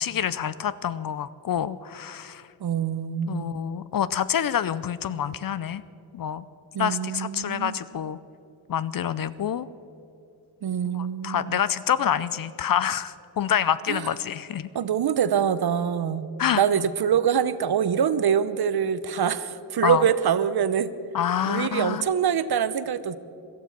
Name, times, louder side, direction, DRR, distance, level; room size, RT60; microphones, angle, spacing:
voice 1, 0.0-2.4 3.3-5.8 6.1-6.4 6.8-8.2 8.7-9.7 10.8-14.7 16.4-16.6 19.8-20.0 21.1-22.0, left 9 dB, 45° left, 16 dB, 0.6 m, -27 dB
voice 2, 2.6-3.5 6.7-7.8 10.6-11.6 13.9-14.1 14.7-16.3 16.5-20.9 21.5-23.2, right 8 dB, 50° right, 14 dB, 0.9 m, -24 dB
17.5 x 12.5 x 6.0 m, 2.7 s
supercardioid pair, 60°, 50 cm